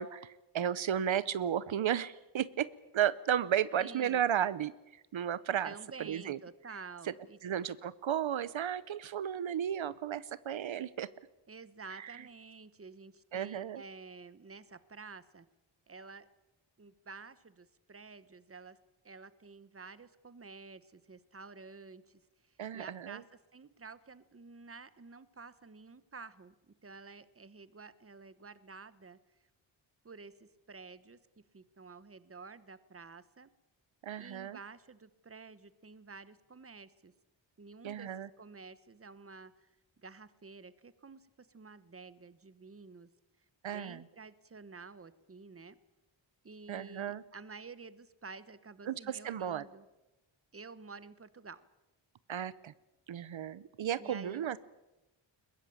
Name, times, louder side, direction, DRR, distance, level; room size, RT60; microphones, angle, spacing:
voice 1, 0.0-5.7 6.0-6.4 7.4-11.1 11.9-12.2 13.3-13.8 22.6-23.2 34.0-34.6 37.8-38.3 43.6-44.0 46.7-47.2 48.9-49.6 52.3-52.7 53.1-54.6, right 9 dB, 75° right, 17 dB, 0.8 m, -34 dB
voice 2, 3.8-4.3 5.6-7.4 11.5-15.4 15.9-16.3 16.8-18.8 19.0-22.2 22.7-23.2 23.5-29.2 30.0-31.2 31.5-33.5 34.2-37.1 37.6-39.7 40.0-43.1 43.7-45.8 46.4-49.9 50.5-51.6 54.0-54.6, right 4 dB, 30° right, 15 dB, 1.1 m, -50 dB
22.0 x 21.0 x 8.7 m, 1.0 s
wide cardioid pair, 135°, 47 cm